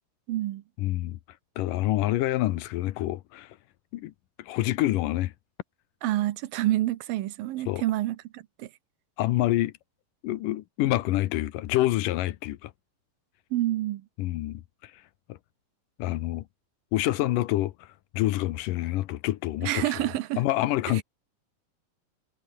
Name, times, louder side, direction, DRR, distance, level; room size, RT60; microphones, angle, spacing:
voice 1, 0.3-0.6 6.0-8.7 13.5-14.0 19.6-20.4 20.9-21.0, right 15 dB, 90° right, 2.8 m, -28 dB
voice 2, 0.8-1.2 1.6-3.5 3.9-4.1 4.5-5.3 7.7-7.8 9.2-9.7 10.2-12.7 14.2-14.9 16.0-16.4 16.9-17.7 18.1-19.9 20.4-21.0, left 15 dB, 75° left, 2.4 m, -27 dB
omnidirectional pair, 4.0 m